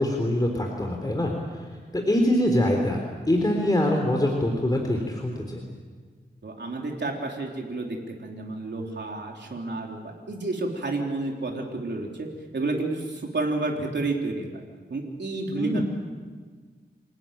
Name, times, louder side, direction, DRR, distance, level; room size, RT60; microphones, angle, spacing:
voice 1, 0.0-1.3 1.9-5.6 15.6-15.8, left 1 dB, 20° left, 2 dB, 3.8 m, -24 dB
voice 2, 6.4-12.3 12.5-14.5 14.9-15.8, right 2 dB, 80° right, 0 dB, 3.5 m, -30 dB
28.5 x 18.5 x 9.0 m, 1.5 s
wide cardioid pair, 65°, 18 cm